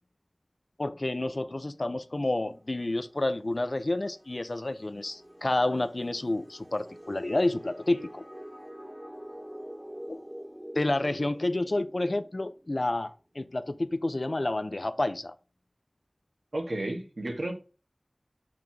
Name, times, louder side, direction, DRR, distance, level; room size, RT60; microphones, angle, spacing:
voice 1, 0.8-8.2 10.1-10.2 10.7-15.3, left 2 dB, 60° left, 0.6 m, -29 dB
sound 1, 2.5-13.0, equal, 10° right, 1.3 m, -47 dB
voice 2, 16.5-17.5, right 1 dB, 90° right, 1.9 m, -32 dB
6.2 x 5.9 x 3.6 m
wide cardioid pair, 50°, 0 cm